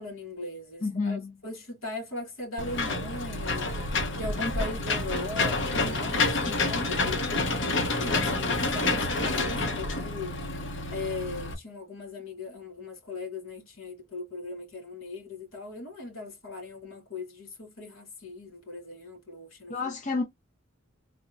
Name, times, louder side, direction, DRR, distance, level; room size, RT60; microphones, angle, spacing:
voice 1, 0.0-3.7 4.2-7.2 7.5-10.4 10.9-19.8, left 2 dB, 75° left, 2.4 m, -38 dB
voice 2, 0.8-1.4 5.7-5.9 19.7-20.2, left 4 dB, 35° left, 0.6 m, -30 dB
Engine / Mechanisms, 2.6-11.5, left 3 dB, 60° left, 0.9 m, -28 dB
3.6 x 2.0 x 3.8 m
head